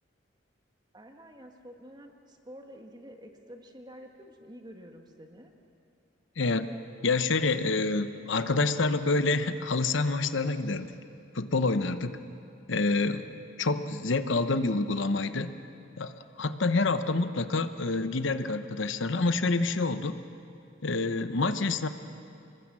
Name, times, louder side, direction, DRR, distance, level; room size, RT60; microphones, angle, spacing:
voice 1, 0.9-5.5, equal, 20° right, 4 dB, 1.7 m, -49 dB
voice 2, 6.4-6.7 7.0-10.9 11.3-12.1 12.7-13.2 13.6-15.5 16.0-16.1 16.4-20.1 20.8-21.9, left 3 dB, 70° left, 11 dB, 0.9 m, -27 dB
26.5 x 21.0 x 7.5 m, 2.5 s
head